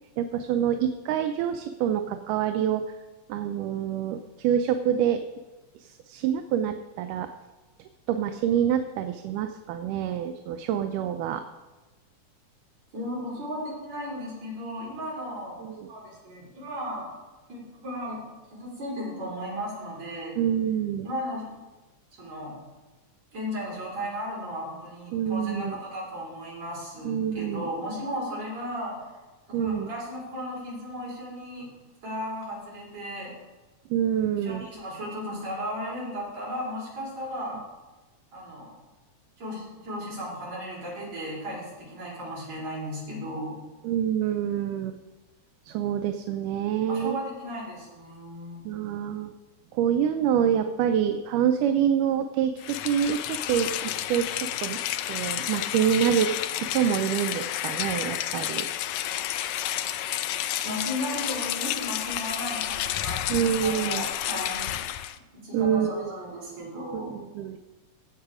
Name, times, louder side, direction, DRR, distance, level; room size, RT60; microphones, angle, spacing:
voice 1, 0.2-2.9 3.3-5.2 5.8-7.3 8.1-11.4 15.6-15.9 20.4-21.1 25.1-25.8 27.0-27.7 29.5-29.9 33.9-34.7 43.8-45.0 45.7-47.2 48.7-49.3 49.7-54.8 55.1-58.7 63.3-64.1 65.5-66.1 66.9-67.6, right 9 dB, 85° right, 7 dB, 2.2 m, -26 dB
voice 2, 12.9-15.6 15.9-17.1 17.5-18.2 18.5-20.4 21.0-21.4 22.2-22.6 23.3-29.0 29.5-31.7 32.0-33.3 34.4-37.6 38.3-38.7 39.4-43.6 46.9-48.6 60.6-64.8 65.3-67.2, equal, 55° right, -5 dB, 6.0 m, -35 dB
Rain, 52.6-65.2, left 12 dB, 85° left, 1.6 m, -31 dB
15.5 x 8.3 x 4.9 m, 1.2 s
omnidirectional pair, 3.6 m